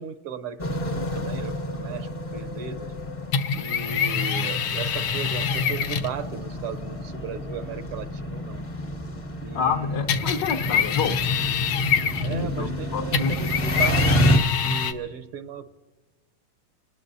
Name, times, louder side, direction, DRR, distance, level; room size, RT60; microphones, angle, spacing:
voice 1, 0.0-2.9 3.5-8.6 9.4-10.1 12.2-15.7, right 7 dB, 80° right, 10 dB, 1.7 m, -36 dB
sound 1, 0.6-14.4, equal, 30° left, 0.6 m, -29 dB
sound 2, 3.3-6.2 10.1-12.5 13.1-14.9, left 6 dB, 75° left, 1.7 m, -25 dB
voice 2, 9.5-11.2 12.3-13.3, left 6 dB, 60° left, 2 dB, 1.2 m, -28 dB
26.5 x 19.5 x 2.7 m, 1.3 s
omnidirectional pair, 2.4 m